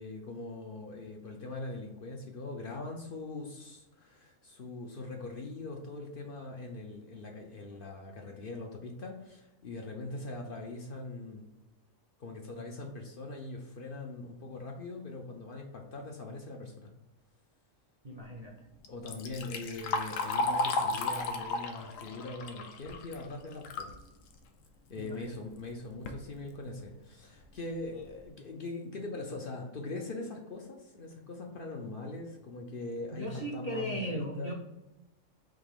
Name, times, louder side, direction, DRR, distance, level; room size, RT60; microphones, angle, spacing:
voice 1, 0.0-11.5 12.2-16.9 18.9-23.9 24.9-34.5, left 2 dB, 55° left, 2 dB, 0.7 m, -41 dB
voice 2, 18.0-18.5 25.0-25.4 33.1-34.5, equal, 45° right, -2 dB, 0.5 m, -37 dB
Liquid, 18.8-24.0 24.4-24.5 25.3-25.4 25.9-26.2 26.8-26.9 27.4-27.5 27.9-28.2, left 3 dB, 90° left, 1.0 m, -34 dB
3.7 x 2.9 x 4.8 m, 0.99 s
omnidirectional pair, 1.3 m